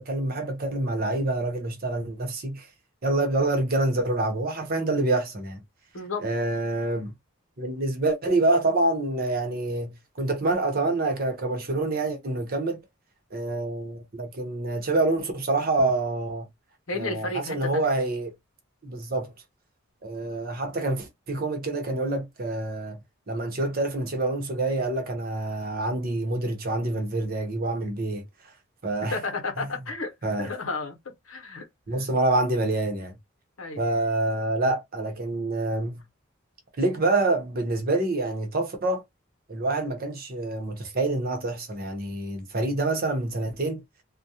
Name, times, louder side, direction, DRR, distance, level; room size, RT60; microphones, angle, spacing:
voice 1, 0.0-2.7 3.0-5.6 6.2-7.1 7.6-12.8 13.3-16.5 16.9-18.3 18.8-19.3 20.0-23.0 23.3-28.2 28.8-29.2 29.6-29.7 30.2-30.5 31.9-33.1 33.8-36.0 36.8-39.0 39.5-43.8, right 2 dB, 45° right, 0.8 m, -27 dB
voice 2, 16.9-17.9 29.1-30.1 30.4-31.0 31.3-31.7 33.6-33.8, left 3 dB, 75° left, 0.9 m, -32 dB
2.3 x 2.2 x 2.8 m
head